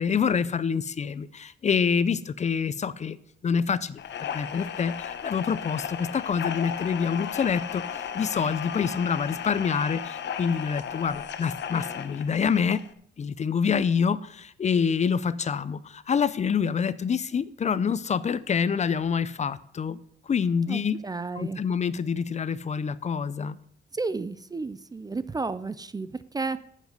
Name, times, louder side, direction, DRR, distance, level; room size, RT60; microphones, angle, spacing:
voice 1, 0.0-3.2 3.4-7.8 8.1-12.8 13.2-20.0 20.3-21.0 21.4-23.6, left 6 dB, 35° left, 16 dB, 0.5 m, -26 dB
sound 1, 4.0-12.9, left 8 dB, 70° left, 0.9 m, -35 dB
voice 2, 20.7-21.6 23.9-26.6, right 3 dB, 20° right, 14 dB, 0.4 m, -32 dB
9.2 x 7.3 x 8.0 m, 0.67 s
cardioid pair, 130°, 19 cm